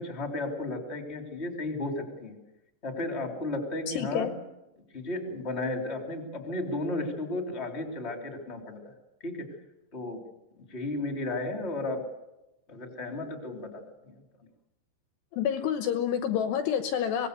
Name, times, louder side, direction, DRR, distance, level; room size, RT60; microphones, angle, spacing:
voice 1, 0.0-2.3 2.8-4.3 4.9-8.9 9.2-9.5 9.9-10.2 10.7-12.0 12.7-14.2, left 2 dB, 15° left, 3 dB, 3.0 m, -34 dB
voice 2, 3.9-4.3 15.3-17.3, left 8 dB, 75° left, 7 dB, 3.0 m, -28 dB
24.5 x 20.0 x 6.8 m, 0.96 s
omnidirectional pair, 5.2 m